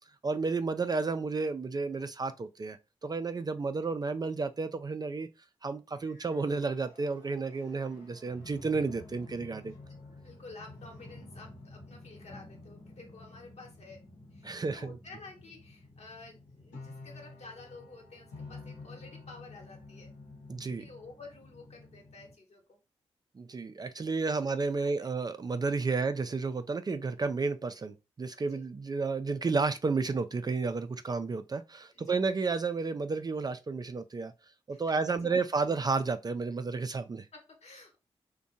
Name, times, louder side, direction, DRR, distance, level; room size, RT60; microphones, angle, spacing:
voice 1, 0.2-2.8 3.0-5.3 5.6-9.7 14.4-15.0 20.5-20.8 23.4-34.3 34.7-37.3, right 4 dB, 30° right, 0.3 m, -32 dB
sound 1, 5.9-22.3, left 2 dB, 90° left, 0.9 m, -50 dB
voice 2, 10.2-20.2 20.8-22.8 24.0-24.5 24.8-25.1 25.8-26.1 28.4-28.7 31.1-31.2 31.9-32.2 34.7-35.3 37.3-38.0, left 3 dB, 60° left, 1.1 m, -51 dB
2.6 x 2.2 x 2.6 m
supercardioid pair, 40°, 13 cm